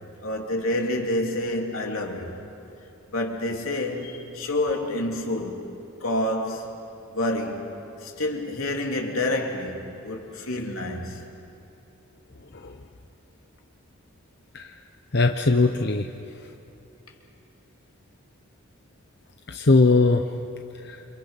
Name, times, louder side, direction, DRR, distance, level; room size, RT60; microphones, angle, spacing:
voice 1, 0.2-2.4 3.1-5.7 6.0-6.8 7.1-11.2, left 1 dB, 85° left, 3.2 m, -28 dB
voice 2, 15.1-16.1 19.5-20.2 20.9-21.0, left 3 dB, 55° left, 0.9 m, -19 dB
29.0 x 27.5 x 5.8 m
head